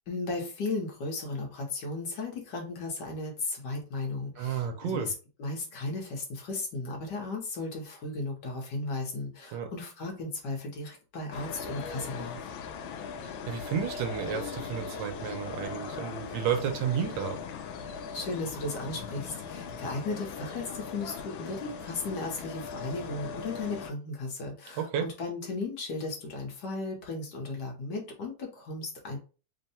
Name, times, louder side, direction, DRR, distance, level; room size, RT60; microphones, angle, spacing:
voice 1, 0.1-5.1 5.4-12.5 18.1-29.2, left 3 dB, 60° left, 1.5 m, -35 dB
voice 2, 4.4-5.1 9.5-9.7 13.2-17.4 24.8-25.1, right 8 dB, 75° right, 1.3 m, -32 dB
sound 1, 11.3-23.9, left 6 dB, 75° left, 1.3 m, -39 dB
3.6 x 2.2 x 4.1 m
omnidirectional pair, 2.2 m